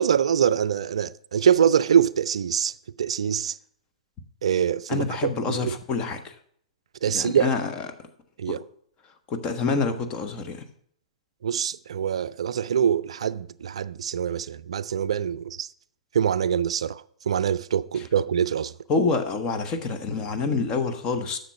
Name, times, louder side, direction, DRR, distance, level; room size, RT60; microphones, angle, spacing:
voice 1, 0.0-2.7 3.0-3.6 4.4-5.0 5.5-5.8 7.0-7.5 8.4-8.6 11.4-15.7 16.1-18.7, right 8 dB, 60° right, 0.3 m, -24 dB
voice 2, 4.9-6.3 7.1-7.9 8.5-8.6 9.3-10.6 17.9-18.0 18.9-21.4, left 4 dB, 25° left, 1.1 m, -27 dB
10.0 x 6.9 x 5.7 m
figure-of-eight pair, 110°, 3 cm